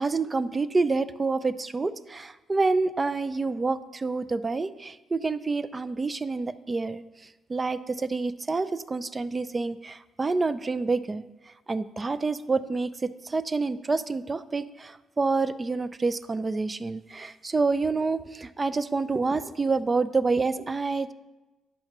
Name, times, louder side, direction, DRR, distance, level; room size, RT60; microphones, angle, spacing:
voice 1, 0.0-7.0 7.5-11.2 11.7-21.1, right 3 dB, 25° right, 15 dB, 0.3 m, -28 dB
10.0 x 5.7 x 3.0 m, 1.1 s
cardioid pair, 90°, 0 cm